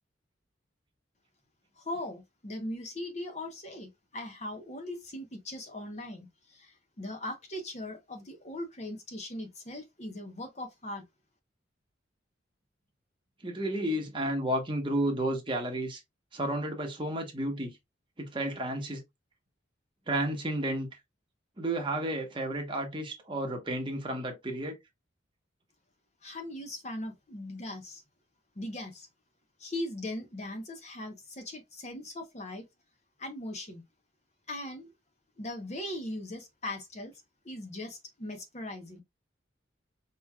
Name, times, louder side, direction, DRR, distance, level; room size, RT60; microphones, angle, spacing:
voice 1, 1.8-11.0 26.2-28.0 28.6-29.1 29.6-32.6 33.2-33.8 34.5-34.9 35.4-37.1 37.4-39.0, left 1 dB, 35° left, 0.8 m, -39 dB
voice 2, 13.4-16.0 16.3-17.7 18.2-19.0 20.1-21.0 21.6-24.8, right 1 dB, 25° right, 1.0 m, -32 dB
4.8 x 3.0 x 2.3 m
head